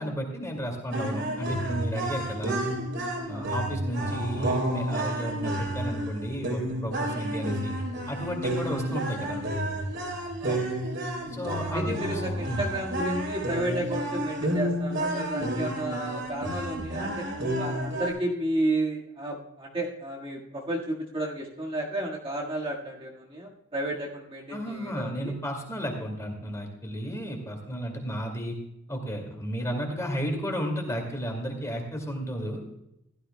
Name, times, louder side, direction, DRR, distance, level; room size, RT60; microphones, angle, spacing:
voice 1, 0.0-2.6 3.3-7.7 8.1-9.4 10.5-10.6 11.3-12.2 12.5-12.7 24.5-28.6 28.9-32.6, equal, 15° left, 3 dB, 2.2 m, -33 dB
sound 1, 0.9-18.1, right 1 dB, 55° right, 3.5 m, -31 dB
voice 2, 11.4-17.3 17.6-25.3, right 1 dB, 25° right, -3 dB, 1.7 m, -32 dB
16.0 x 13.0 x 2.2 m, 0.85 s
head